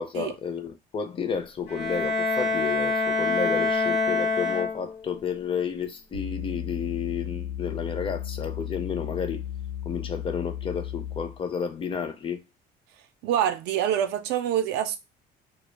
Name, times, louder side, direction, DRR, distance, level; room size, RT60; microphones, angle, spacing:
voice 1, 0.0-9.4 9.9-12.4, left 6 dB, 30° left, 0.4 m, -31 dB
Bowed string instrument, 1.7-5.2, left 3 dB, 70° left, 0.9 m, -26 dB
sound 1, 6.1-11.4, left 11 dB, 90° left, 0.5 m, -34 dB
voice 2, 13.2-15.0, right 10 dB, 85° right, 0.4 m, -26 dB
2.1 x 2.0 x 3.1 m
cardioid pair, 110°, 17 cm